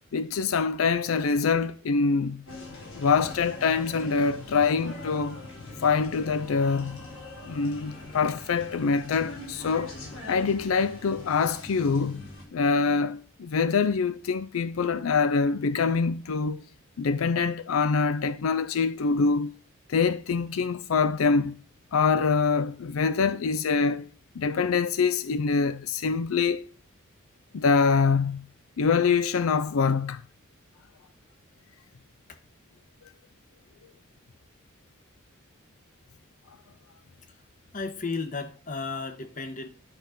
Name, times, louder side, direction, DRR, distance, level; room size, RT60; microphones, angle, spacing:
voice 1, 0.1-2.5 2.9-5.4 5.8-7.0 7.4-10.0 10.3-16.6 17.0-19.5 19.9-21.6 21.9-24.1 24.4-26.6 27.5-28.5 28.8-30.2, left 5 dB, 85° left, 0.5 m, -25 dB
sound 1, 2.5-12.4, left 2 dB, 70° left, 3.8 m, -42 dB
voice 2, 37.7-39.7, left 4 dB, 40° left, 1.0 m, -34 dB
11.0 x 3.8 x 5.7 m
head